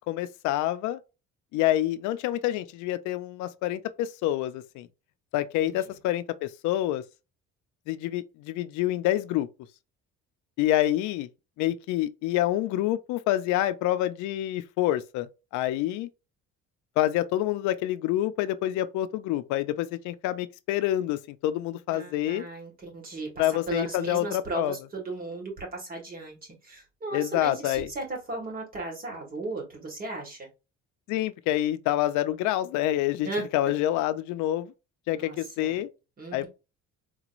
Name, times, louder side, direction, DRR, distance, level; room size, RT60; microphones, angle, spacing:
voice 1, 0.1-1.0 1.5-4.9 5.3-7.0 7.9-9.5 10.6-11.3 11.6-16.1 17.0-22.5 23.4-24.8 27.1-27.9 31.1-34.7 35.1-35.9 36.3-36.5, left 14 dB, 90° left, 0.5 m, -27 dB
voice 2, 21.9-30.5 33.2-33.5 35.1-35.8 36.2-36.5, right 2 dB, 30° right, 1.8 m, -36 dB
3.9 x 3.0 x 2.5 m
cardioid pair, 145°, 29 cm